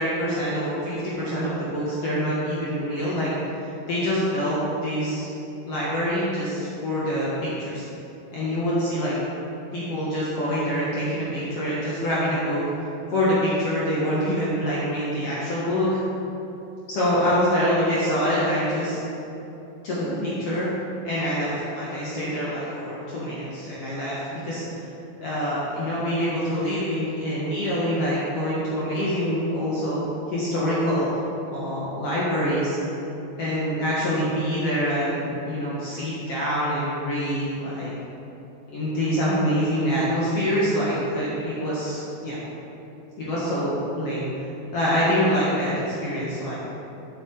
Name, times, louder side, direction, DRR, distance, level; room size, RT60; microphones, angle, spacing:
voice 1, 0.0-4.6 4.8-5.3 5.6-7.9 8.3-9.2 9.7-12.6 13.1-16.0 16.9-19.0 19.8-20.7 21.0-24.6 25.2-30.0 30.3-31.2 31.5-32.8 33.4-37.9 38.7-42.4 43.2-44.5 44.7-46.6, equal, 60° left, -8 dB, 1.6 m, -25 dB
7.5 x 7.2 x 3.8 m, 3.0 s
omnidirectional pair, 4.3 m